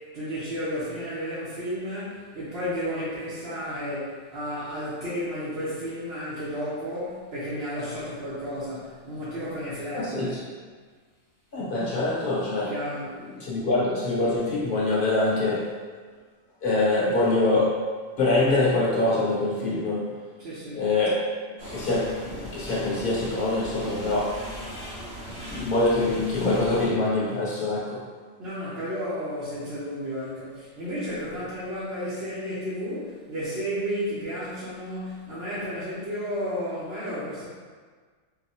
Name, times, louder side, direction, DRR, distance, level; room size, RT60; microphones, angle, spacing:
voice 1, 0.0-10.3 12.7-13.2 20.4-20.8 28.4-37.5, equal, 50° right, -11 dB, 1.0 m, -32 dB
voice 2, 9.9-10.4 11.5-12.8 13.3-15.7 16.6-17.8 18.2-20.1 20.7-21.2 21.6-24.4 25.2-28.0, left 2 dB, 40° left, -6 dB, 0.9 m, -24 dB
sound 1, 21.6-26.9, equal, 90° right, 2.2 m, -39 dB
4.7 x 2.9 x 2.7 m, 1.5 s
omnidirectional pair, 1.5 m